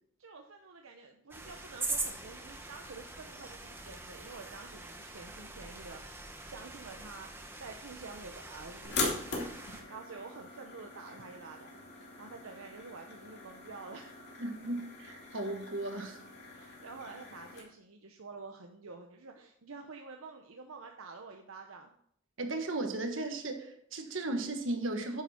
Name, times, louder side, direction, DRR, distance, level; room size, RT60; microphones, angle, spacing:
voice 1, 0.2-14.2 16.4-21.9, right 4 dB, 85° right, 3 dB, 0.9 m, -49 dB
sound 1, 1.3-9.8, right 3 dB, 10° right, 1.2 m, -43 dB
sound 2, 8.8-17.6, left 3 dB, 55° left, 2.7 m, -41 dB
voice 2, 14.4-16.2 22.4-25.2, right 2 dB, 70° right, 5 dB, 1.5 m, -36 dB
9.8 x 7.3 x 4.4 m, 0.66 s
head